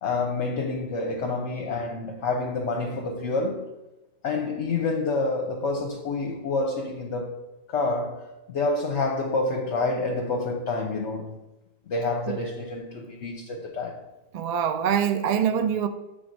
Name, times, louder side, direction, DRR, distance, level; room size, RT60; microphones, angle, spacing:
voice 1, 0.0-3.7 4.2-7.4 7.7-11.4 11.9-14.0, left 3 dB, 65° left, 1.0 m, -28 dB
voice 2, 14.3-15.9, right 8 dB, 70° right, 0.3 m, -24 dB
7.7 x 3.5 x 5.2 m
omnidirectional pair, 1.4 m